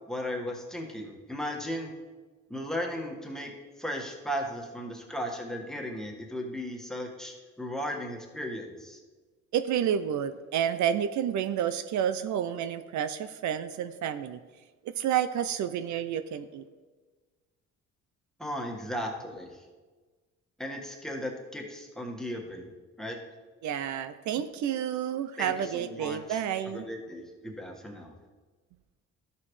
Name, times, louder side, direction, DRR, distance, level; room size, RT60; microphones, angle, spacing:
voice 1, 0.1-1.9 2.5-3.5 3.8-9.0 18.4-19.6 20.6-22.7 23.0-23.2 25.4-26.4 26.7-28.1, equal, ahead, 0 dB, 1.6 m, -36 dB
voice 2, 9.5-14.4 14.8-16.7 23.6-26.9, right 9 dB, 70° right, 11 dB, 0.5 m, -30 dB
13.0 x 5.8 x 3.2 m, 1.3 s
cardioid pair, 90°, 30 cm